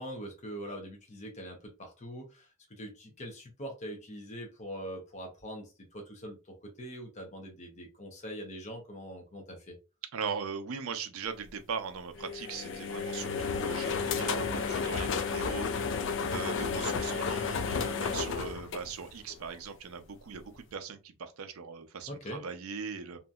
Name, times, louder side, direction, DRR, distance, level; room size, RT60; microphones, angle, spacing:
voice 1, 0.0-6.4 6.8-9.7 22.1-22.4, equal, 35° left, 0.7 m, -43 dB
voice 2, 10.1-23.2, right 6 dB, 75° right, 0.5 m, -40 dB
sound 1, 12.2-19.5, left 5 dB, 60° left, 0.3 m, -32 dB
2.8 x 2.5 x 2.3 m
head